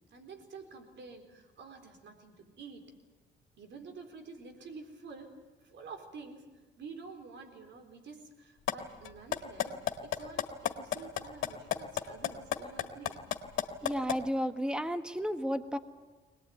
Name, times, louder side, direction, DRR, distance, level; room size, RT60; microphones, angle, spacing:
voice 1, 0.1-2.9 3.6-5.4 5.6-13.2, right 4 dB, 65° right, 5 dB, 4.1 m, -49 dB
sound 1, 8.7-8.8 9.0-14.2, left 12 dB, 75° left, 2.0 m, -31 dB
voice 2, 13.8-15.8, equal, 5° right, 9 dB, 1.3 m, -32 dB
22.0 x 19.5 x 9.4 m, 1.2 s
cardioid pair, 90°, 20 cm